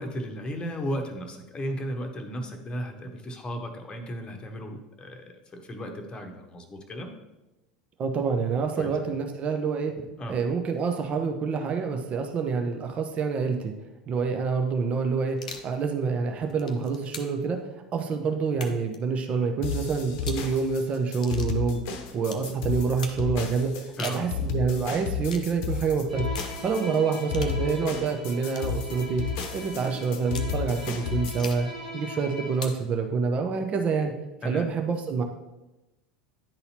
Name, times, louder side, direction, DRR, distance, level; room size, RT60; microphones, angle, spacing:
voice 1, 0.0-7.1 8.8-8.9 10.2-10.4 24.0-24.3 34.4-34.7, equal, 25° left, 3 dB, 1.0 m, -35 dB
voice 2, 8.0-13.7 14.1-15.4 15.6-17.6 17.9-21.8 22.1-23.7 24.0-26.2 26.6-29.2 29.5-31.7 31.9-34.1 34.4-35.2, right 5 dB, 35° right, 5 dB, 0.7 m, -27 dB
sound 1, 15.3-15.7 16.4-17.4 18.5-19.0 20.1-20.5 21.2-21.6 22.3-22.5 23.0-23.2 23.8-24.3 25.3-25.5 26.3-26.6 27.3-27.6 28.5-28.7 29.4-29.6 30.3-30.5 31.3-31.7 32.5-32.8, left 4 dB, 80° left, 0.6 m, -40 dB
sound 2, 19.6-31.5, left 6 dB, 55° left, 0.8 m, -32 dB
Bowed string instrument, 26.1-32.8, equal, 85° right, 2.0 m, -41 dB
10.5 x 4.0 x 2.8 m, 1.0 s
figure-of-eight pair, 80°, 4 cm